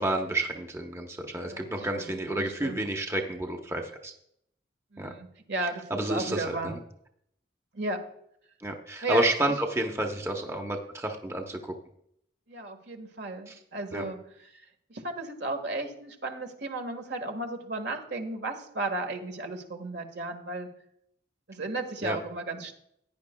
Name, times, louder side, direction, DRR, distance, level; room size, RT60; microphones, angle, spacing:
voice 1, 0.0-4.1 5.0-5.1 5.9-6.8 8.6-11.7 13.5-13.6 13.9-14.0 22.0-22.2, right 1 dB, 15° right, 2 dB, 0.9 m, -30 dB
voice 2, 1.4-2.9 4.9-6.8 7.7-8.0 9.0-9.5 12.5-14.6 14.9-20.7 21.5-22.7, right 2 dB, 65° right, 5 dB, 1.5 m, -35 dB
16.0 x 9.9 x 2.3 m, 0.72 s
head